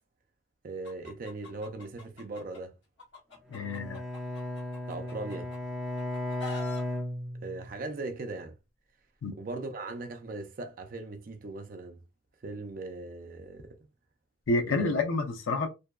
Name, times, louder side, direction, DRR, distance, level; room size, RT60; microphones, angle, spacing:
voice 1, 0.6-2.8 4.9-5.5 7.4-8.6 9.4-12.0 12.4-13.8 14.7-15.0, right 2 dB, 45° right, 0.4 m, -39 dB
Chicken rooster, 0.8-2.6 3.0-5.6 6.0-6.8, left 4 dB, 70° left, 0.9 m, -46 dB
voice 2, 3.5-4.0 9.2-9.3 14.5-15.7, left 3 dB, 90° left, 0.5 m, -28 dB
Bowed string instrument, 3.5-7.9, left 1 dB, ahead, 0.6 m, -35 dB
2.6 x 2.2 x 2.3 m
head